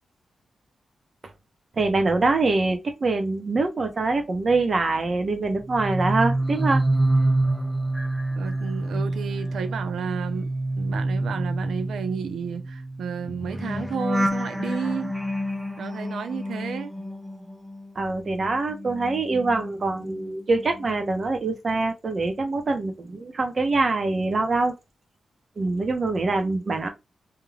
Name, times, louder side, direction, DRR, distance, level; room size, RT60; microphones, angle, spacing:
voice 1, 1.8-6.8 17.9-24.7 25.6-26.9, right 3 dB, 50° right, 0.8 m, -24 dB
sound 1, 5.6-17.9 18.2-20.3 20.6-20.9, right 1 dB, ahead, 0.5 m, -27 dB
voice 2, 8.4-10.5 10.8-15.1 15.8-16.9, right 6 dB, 85° right, 0.4 m, -32 dB
2.4 x 2.2 x 3.2 m
cardioid pair, 60°, 0 cm